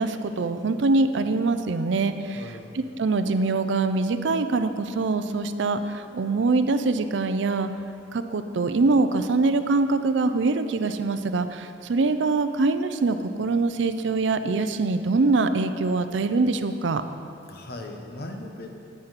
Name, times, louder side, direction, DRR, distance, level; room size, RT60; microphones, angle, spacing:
voice 1, 0.0-2.4 2.7-7.7 8.1-17.0, right 3 dB, 70° right, 10 dB, 0.5 m, -24 dB
voice 2, 2.3-2.8 17.5-18.8, left 1 dB, 55° left, 3 dB, 0.9 m, -38 dB
9.6 x 9.3 x 4.1 m, 2.5 s
head